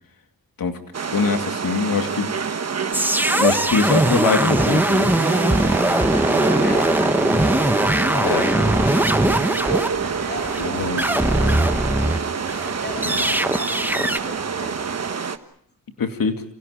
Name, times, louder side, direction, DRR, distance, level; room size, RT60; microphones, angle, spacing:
sound 1, 0.9-15.4, right 6 dB, 45° right, 1.3 m, -28 dB
voice 1, 1.1-2.3 3.4-5.1 8.2-8.5 10.6-11.0 13.1-13.3 16.0-16.4, left 5 dB, 75° left, 6 dB, 2.5 m, -23 dB
sound 2, 2.9-12.2 12.5-14.2, right 1 dB, 5° right, 0.9 m, -20 dB
voice 2, 3.9-5.5 5.8-12.3 12.8-14.8, left 1 dB, 30° left, 5 dB, 7.0 m, -38 dB
sound 3, 5.2-15.1, right 6 dB, 70° right, 3.1 m, -32 dB
29.5 x 27.0 x 5.0 m, 0.66 s
wide cardioid pair, 145°, 35 cm